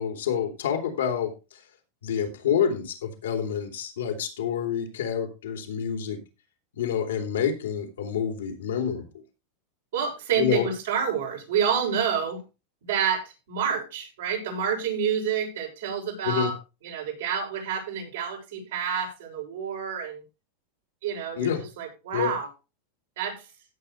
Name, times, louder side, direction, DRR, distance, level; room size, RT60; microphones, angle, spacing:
voice 1, 0.0-1.3 2.0-6.2 6.8-9.1 10.4-10.7 16.2-16.5 21.4-21.6 22.1-22.3, left 8 dB, 90° left, 4 dB, 3.5 m, -27 dB
voice 2, 9.9-12.4 12.8-16.6 16.8-20.2 21.0-21.5 21.8-22.5 23.2-23.4, right 7 dB, 80° right, 0 dB, 6.8 m, -28 dB
16.5 x 7.0 x 3.3 m, 0.30 s
hypercardioid pair, 115°, 0 cm